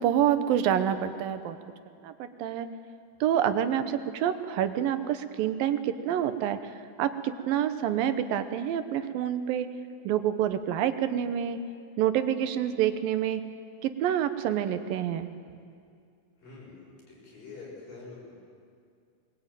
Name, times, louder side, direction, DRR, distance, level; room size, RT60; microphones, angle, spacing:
voice 1, 0.0-1.6 2.0-2.7 3.2-6.7 7.0-9.7 10.0-11.6 12.0-13.4 13.8-15.3, right 10 dB, 90° right, 10 dB, 2.8 m, -27 dB
voice 2, 16.4-16.7 17.1-18.3, left 3 dB, 75° left, -3 dB, 8.7 m, -45 dB
22.0 x 21.0 x 9.1 m, 2.3 s
omnidirectional pair, 4.0 m